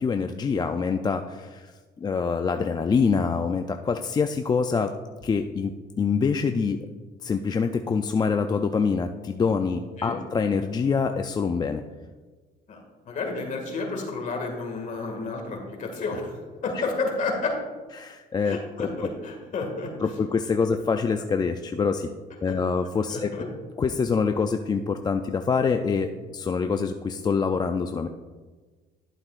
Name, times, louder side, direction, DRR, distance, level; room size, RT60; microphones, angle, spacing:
voice 1, 0.0-1.7 2.0-4.9 5.2-6.8 7.2-11.8 18.0-18.9 20.0-22.1 22.4-23.5 23.8-28.1, left 5 dB, 25° left, 6 dB, 0.4 m, -25 dB
voice 2, 12.7-17.6 18.4-20.1 22.5-22.6 23.1-23.5, left 3 dB, 50° left, 2 dB, 2.0 m, -31 dB
11.5 x 7.5 x 2.5 m, 1.4 s
cardioid pair, 110°, 17 cm